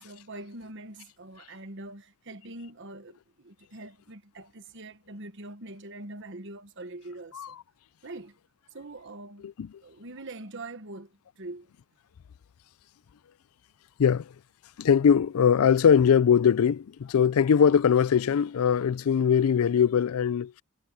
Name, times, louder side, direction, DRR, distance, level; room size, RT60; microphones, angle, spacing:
voice 1, 0.0-7.6 8.0-8.4 8.7-9.5 9.8-11.7, right 2 dB, 55° right, 1.4 m, -43 dB
voice 2, 14.8-20.6, left 7 dB, 80° left, 0.4 m, -21 dB
head